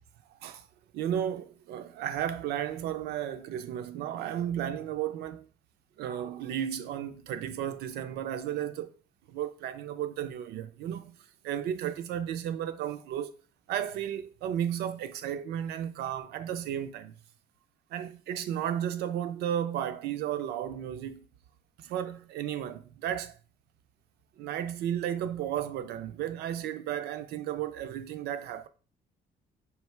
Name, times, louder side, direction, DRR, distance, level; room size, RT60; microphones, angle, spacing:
voice 1, 0.9-5.4 6.0-8.9 9.3-11.2 11.4-13.3 13.7-17.1 17.9-21.2 21.8-23.3 24.4-28.7, right 10 dB, 75° right, 0.5 m, -33 dB
3.3 x 2.8 x 4.5 m
cardioid pair, 110°, 17 cm